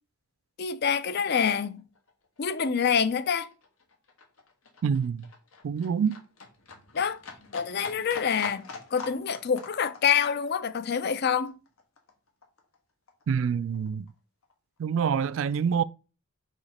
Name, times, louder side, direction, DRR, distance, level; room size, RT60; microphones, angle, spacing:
voice 1, 0.6-1.8 2.4-3.5 6.9-7.2 7.5-8.6 8.9-11.5, left 7 dB, 50° left, 0.5 m, -26 dB
Livestock farm animals working animals, 1.8-12.8 13.1-14.1 14.4-14.5, left 4 dB, 90° left, 1.5 m, -45 dB
voice 2, 4.8-5.3 5.6-6.2 13.3-14.1 14.8-15.8, right 7 dB, 65° right, 0.3 m, -26 dB
5.1 x 5.0 x 4.2 m
head